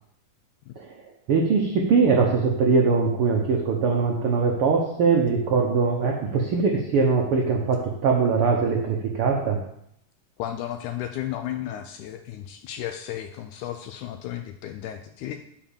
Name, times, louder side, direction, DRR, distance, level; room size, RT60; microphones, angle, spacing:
voice 1, 0.8-9.6, right 4 dB, 85° right, 0 dB, 1.2 m, -22 dB
voice 2, 10.4-15.4, left 11 dB, 80° left, 7 dB, 1.8 m, -34 dB
7.2 x 5.0 x 7.1 m, 0.74 s
omnidirectional pair, 3.9 m